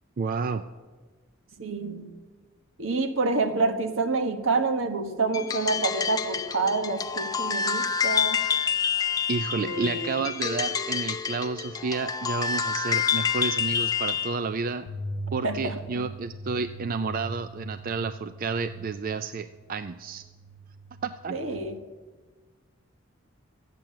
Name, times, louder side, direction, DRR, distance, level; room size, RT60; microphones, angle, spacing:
voice 1, 0.2-0.6 9.3-14.9 15.3-20.2 21.0-21.4, right 4 dB, 45° right, 11 dB, 0.4 m, -30 dB
voice 2, 1.6-2.1 2.8-8.4 9.6-10.2 15.4-16.0 21.3-21.8, right 3 dB, 75° right, 6 dB, 1.3 m, -28 dB
sound 1, 5.3-14.4, left 7 dB, 20° left, 0.6 m, -28 dB
sound 2, 14.8-21.7, right 1 dB, 60° left, 1.0 m, -40 dB
13.5 x 9.1 x 7.4 m, 1.4 s
head